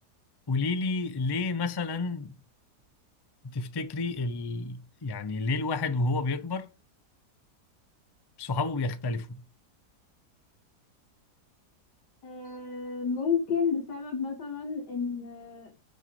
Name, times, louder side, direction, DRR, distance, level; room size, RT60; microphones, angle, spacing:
voice 1, 0.5-2.4 3.4-6.7 8.4-9.4, left 3 dB, 40° left, 0.3 m, -30 dB
voice 2, 12.2-15.7, left 6 dB, 90° left, 2.4 m, -31 dB
6.5 x 6.4 x 5.2 m
omnidirectional pair, 1.8 m